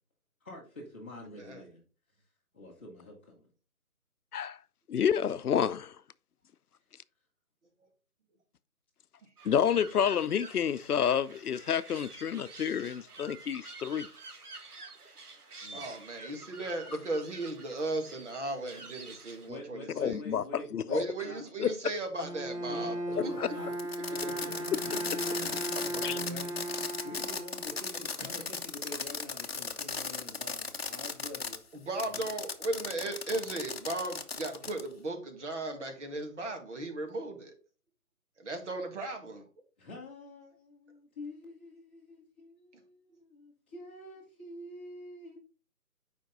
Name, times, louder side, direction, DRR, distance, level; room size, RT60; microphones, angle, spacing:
voice 1, 0.4-1.8 2.5-3.5 15.6-15.8 19.5-21.4 22.7-23.8 24.1-26.5 27.0-31.6 32.0-32.2 39.8-45.4, left 2 dB, 10° left, 1.0 m, -47 dB
voice 2, 1.3-1.6 15.7-20.2 20.9-23.0 23.2-23.3 31.8-37.5 38.4-39.5, right 2 dB, 50° right, 2.1 m, -36 dB
voice 3, 4.9-5.9 9.4-14.1 20.0-21.1 21.6-21.7 23.2-23.5 26.0-26.2, left 8 dB, 80° left, 0.7 m, -29 dB
sound 1, 9.4-19.5, right 3 dB, 80° right, 1.9 m, -49 dB
Bowed string instrument, 22.2-28.1, right 1 dB, 20° right, 1.4 m, -37 dB
Fireworks, 23.7-31.6 32.0-34.9, left 5 dB, 45° left, 0.8 m, -37 dB
7.8 x 5.2 x 3.9 m
hypercardioid pair, 170°, 45 cm